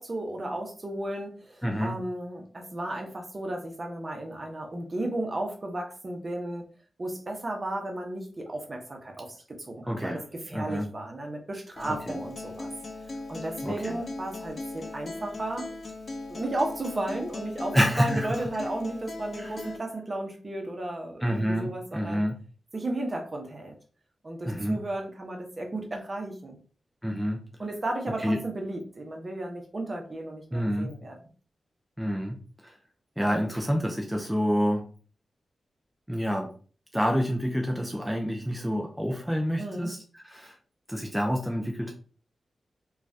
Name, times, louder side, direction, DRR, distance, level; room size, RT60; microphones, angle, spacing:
voice 1, 0.0-6.7 7.0-10.2 10.5-12.7 13.3-15.7 16.3-22.2 22.7-23.7 24.2-26.6 27.6-31.2 39.6-39.9, right 1 dB, 35° right, 2 dB, 0.9 m, -34 dB
voice 2, 1.6-2.0 9.9-10.2 10.5-10.9 11.9-12.2 13.6-14.0 17.7-18.4 19.4-19.7 21.2-22.4 24.4-24.8 27.0-27.5 28.2-28.4 30.5-31.0 32.0-32.8 33.2-34.9 36.1-36.5 36.9-40.6 40.9-41.9, equal, 5° right, 1 dB, 0.5 m, -28 dB
Acoustic guitar, 11.8-19.8, left 2 dB, 45° left, 0.5 m, -39 dB
3.0 x 2.4 x 2.6 m, 0.39 s
cardioid pair, 75°, 0 cm